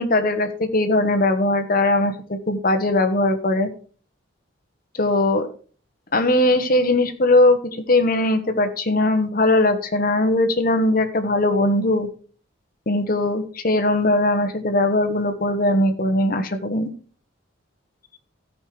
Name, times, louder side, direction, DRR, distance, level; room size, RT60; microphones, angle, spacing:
voice 1, 0.0-3.7 5.0-5.5 6.1-7.6 7.9-12.1 12.9-16.9, left 2 dB, 45° left, 8 dB, 1.1 m, -20 dB
13.5 x 5.5 x 4.7 m, 0.42 s
head